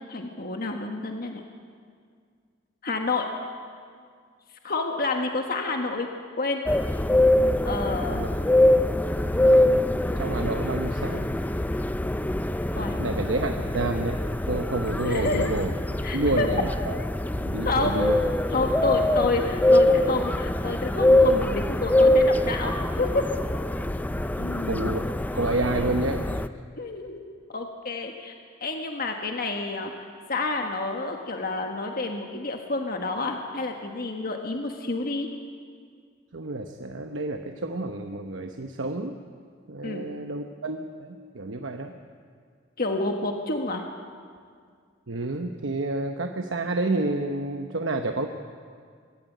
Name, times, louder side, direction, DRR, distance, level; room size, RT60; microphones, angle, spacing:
voice 1, 0.1-1.4 2.8-3.3 4.6-6.6 7.6-8.2 12.7-13.0 15.0-15.5 16.0-16.5 17.6-18.1 18.5-23.2 24.4-25.0 26.8-27.2 27.5-28.3 28.6-29.9 30.3-35.3 39.8-40.0 42.8-43.8, left 3 dB, 50° left, 3 dB, 1.4 m, -29 dB
sound 1, 6.7-26.5, left 1 dB, 10° left, 0.4 m, -24 dB
voice 2, 9.4-9.8 10.2-11.3 13.0-15.7 16.1-17.0 17.4-18.2 24.1-25.0 25.3-26.5 36.3-39.2 39.7-41.9 45.1-48.3, right 2 dB, 80° right, 5 dB, 1.0 m, -29 dB
22.5 x 13.0 x 9.3 m, 2.1 s
head